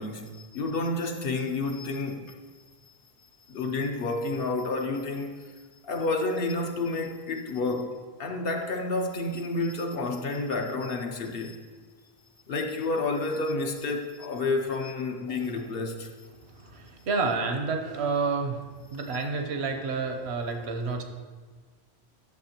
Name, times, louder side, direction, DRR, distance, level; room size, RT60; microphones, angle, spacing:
voice 1, 0.0-2.3 3.5-5.5 5.8-11.6 12.5-16.1, left 3 dB, 65° left, 3 dB, 0.9 m, -30 dB
voice 2, 16.5-18.6 18.9-21.0, right 4 dB, 80° right, 4 dB, 1.1 m, -29 dB
10.5 x 6.9 x 2.9 m, 1.4 s
omnidirectional pair, 1.1 m